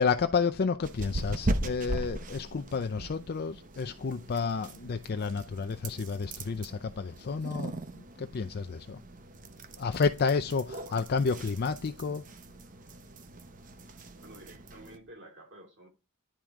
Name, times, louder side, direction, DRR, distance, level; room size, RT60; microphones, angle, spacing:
voice 1, 0.0-9.0 9.8-12.2, left 5 dB, 45° left, 0.5 m, -30 dB
sound 1, 0.8-15.0, right 1 dB, 40° right, 0.8 m, -39 dB
voice 2, 14.2-15.9, right 1 dB, 60° right, 3.0 m, -51 dB
10.5 x 3.7 x 4.6 m
head